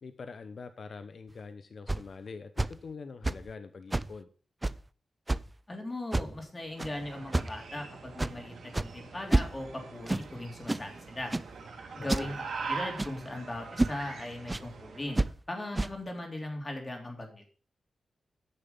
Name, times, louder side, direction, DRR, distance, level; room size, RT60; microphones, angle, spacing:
voice 1, 0.0-4.3 11.9-12.4, left 4 dB, 60° left, 10 dB, 0.8 m, -44 dB
sound 1, 1.3-1.4 1.9-2.1 2.6-2.8 3.2-3.5 3.9-4.1 4.6-4.8 5.3-5.5 6.1-6.4 6.8-6.9 7.3-7.6 8.2-8.4 8.7-8.9 9.3-9.7 10.1-10.3 10.7-10.9 11.3-11.5 12.1-12.3 13.0-13.3 13.8-14.0 14.5-14.7 15.2-15.3 15.8-15.9, right 2 dB, 20° right, 0.5 m, -29 dB
voice 2, 5.7-11.3 12.0-17.5, left 1 dB, 30° left, 2 dB, 3.3 m, -39 dB
sound 2, 6.6-15.3, right 4 dB, 80° right, 2.2 m, -43 dB
9.8 x 6.8 x 5.4 m, 0.40 s
cardioid pair, 70°, 0 cm